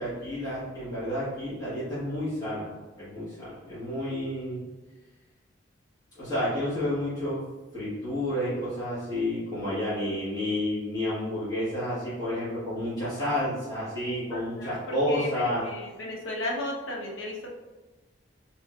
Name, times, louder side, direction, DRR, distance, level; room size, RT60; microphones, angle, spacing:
voice 1, 0.0-2.7 3.0-4.7 6.1-7.4 7.7-15.6, left 1 dB, 20° left, -12 dB, 1.2 m, -30 dB
voice 2, 14.3-17.5, left 1 dB, 85° left, 0 dB, 0.7 m, -35 dB
3.6 x 2.9 x 2.3 m, 1.2 s
head